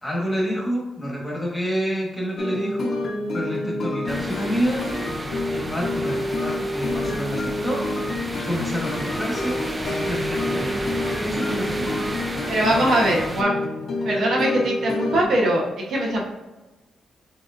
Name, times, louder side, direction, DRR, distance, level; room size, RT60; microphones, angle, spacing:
voice 1, 0.0-2.9 3.3-4.9 5.5-7.9 8.3-10.9 11.2-12.0 12.6-13.0, equal, 10° left, -2 dB, 1.4 m, -28 dB
sound 1, 2.4-15.2, left 2 dB, 60° left, 0.8 m, -28 dB
sound 2, 4.1-13.4, right 1 dB, 20° right, 0.5 m, -32 dB
voice 2, 12.5-13.6 14.0-16.2, right 1 dB, 65° right, -2 dB, 1.0 m, -21 dB
6.0 x 3.0 x 2.5 m, 1.1 s
cardioid pair, 100°, 0 cm